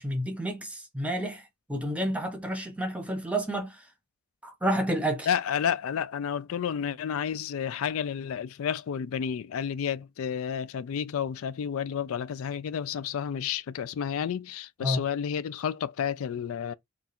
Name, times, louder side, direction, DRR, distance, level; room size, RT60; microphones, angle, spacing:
voice 1, 0.0-1.4 1.7-3.9 4.4-5.3 14.8-15.0, right 1 dB, 5° right, 0.9 m, -30 dB
voice 2, 5.3-16.7, left 8 dB, 65° left, 0.3 m, -31 dB
3.8 x 2.4 x 4.1 m
head